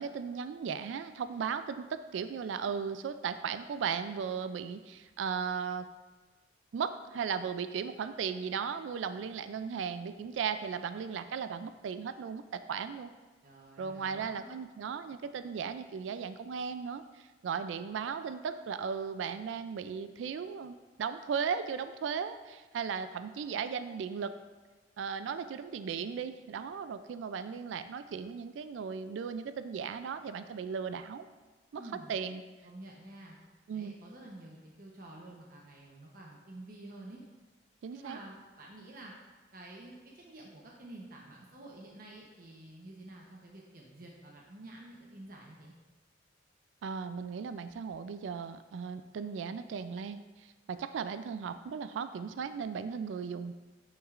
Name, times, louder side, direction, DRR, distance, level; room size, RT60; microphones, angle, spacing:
voice 1, 0.0-5.9 6.7-13.1 13.8-24.3 25.0-31.3 31.7-31.8 32.1-32.4 33.7-33.9 37.8-38.2 46.8-53.5, right 6 dB, 90° right, 11 dB, 0.3 m, -36 dB
voice 2, 13.4-14.5 31.8-32.1 32.6-33.4 33.7-37.2 37.9-39.1 39.5-45.7, right 1 dB, 50° right, -2 dB, 0.8 m, -49 dB
9.0 x 6.3 x 2.5 m, 1.3 s
head